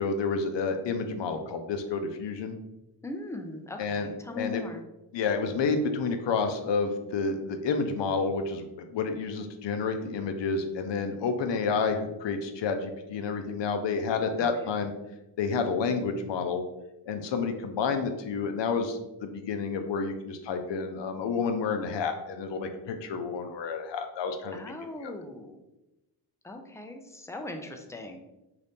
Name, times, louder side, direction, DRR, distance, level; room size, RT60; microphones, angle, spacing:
voice 1, 0.0-2.6 3.8-4.1 4.4-4.6 5.1-14.9 15.4-16.6 17.1-24.6 25.0-25.1, left 5 dB, 60° left, 6 dB, 0.6 m, -30 dB
voice 2, 3.0-4.8 14.4-14.5 24.5-25.6 26.4-28.2, left 2 dB, 5° left, 4 dB, 0.4 m, -39 dB
2.8 x 2.6 x 3.4 m, 0.95 s
cardioid pair, 60°, 50 cm